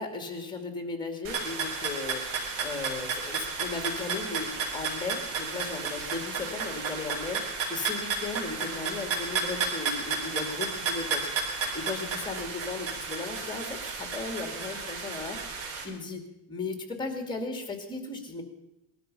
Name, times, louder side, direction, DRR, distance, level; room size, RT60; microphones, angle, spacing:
voice 1, 0.0-2.2 2.6-7.4 7.7-15.5 15.8-16.2 16.5-18.4, left 3 dB, 10° left, 6 dB, 2.5 m, -36 dB
sound 1, 1.2-15.8, right 4 dB, 85° right, 4.1 m, -33 dB
20.0 x 12.5 x 5.5 m, 0.89 s
cardioid pair, 145°, 40 cm